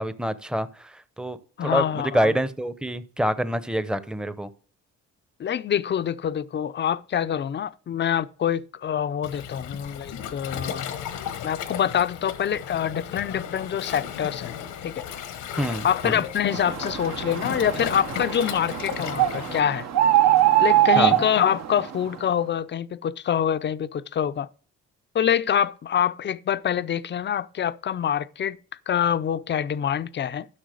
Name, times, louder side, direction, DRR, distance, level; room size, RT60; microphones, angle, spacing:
voice 1, 0.0-1.4 1.6-4.5 15.6-16.2 21.0-21.2, equal, 5° right, 0.7 m, -26 dB
voice 2, 1.6-2.3 5.4-10.9 11.4-14.5 14.8-15.1 15.8-19.9 20.6-24.5 25.1-28.6 28.9-30.5, left 9 dB, 40° left, 0.5 m, -25 dB
Waves surf, 9.2-19.6, left 9 dB, 85° left, 1.2 m, -35 dB
sound 1, 16.5-22.1, right 13 dB, 60° right, 0.9 m, -23 dB
11.5 x 6.2 x 4.9 m
cardioid pair, 90°, 30 cm